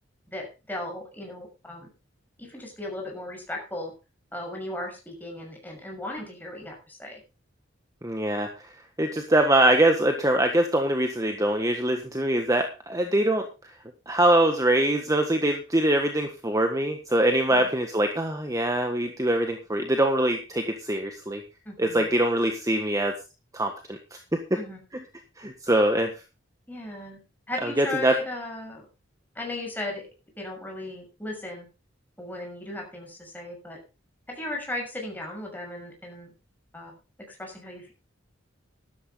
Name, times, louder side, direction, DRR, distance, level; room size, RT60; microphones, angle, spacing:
voice 1, 0.3-1.9 2.4-3.9 4.3-7.2 17.5-17.7 21.6-22.1 24.5-24.8 26.7-27.2 27.5-28.9 29.3-30.0 30.4-31.7 32.2-33.8 34.3-36.3 36.7-36.9 37.3-37.9, left 1 dB, 10° left, 1 dB, 6.4 m, -36 dB
voice 2, 8.0-8.5 9.0-13.5 14.1-21.4 21.8-23.1 23.5-24.0 24.3-24.6 25.4-26.1 27.6-28.2, right 1 dB, 15° right, 5 dB, 1.5 m, -23 dB
13.0 x 12.5 x 3.8 m, 0.30 s
head